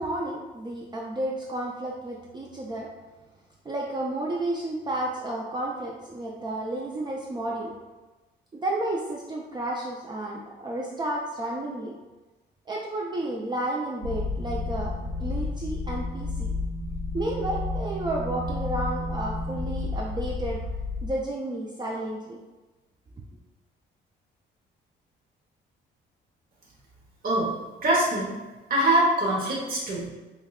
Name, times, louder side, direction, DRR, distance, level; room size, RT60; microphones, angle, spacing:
voice 1, 0.0-2.9 3.7-7.7 8.5-11.9 12.7-16.5 17.1-20.6 21.0-22.4, right 1 dB, 20° right, -3 dB, 0.4 m, -31 dB
sound 1, 14.0-21.1, left 3 dB, 70° right, 1.2 m, -31 dB
voice 2, 27.8-28.3 28.7-30.1, right 1 dB, 45° right, -4 dB, 0.9 m, -23 dB
5.2 x 2.2 x 2.3 m, 1.2 s
cardioid pair, 90°, 20 cm